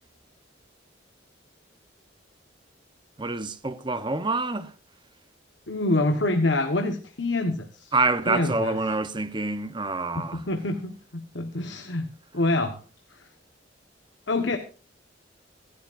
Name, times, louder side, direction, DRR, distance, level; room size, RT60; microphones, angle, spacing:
voice 1, 3.2-4.7 7.9-10.4, right 3 dB, 25° right, 0.9 m, -27 dB
voice 2, 5.7-7.9 8.3-8.7 10.1-12.1 12.3-12.8 14.3-14.6, left 2 dB, 65° left, 1.4 m, -26 dB
25.5 x 11.5 x 2.6 m
head